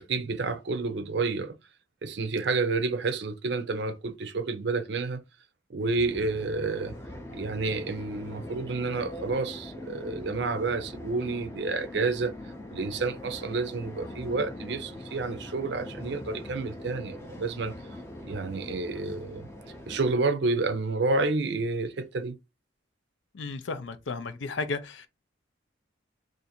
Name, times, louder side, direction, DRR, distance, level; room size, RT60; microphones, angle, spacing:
voice 1, 0.0-1.6 2.0-5.2 5.7-7.0 7.3-12.3 12.7-17.7 18.2-19.5 19.9-22.4, right 3 dB, 60° right, 0.5 m, -29 dB
sound 1, 5.8-20.1, left 1 dB, 15° left, 0.5 m, -42 dB
voice 2, 23.3-25.1, left 4 dB, 70° left, 0.5 m, -34 dB
2.6 x 2.5 x 4.2 m
head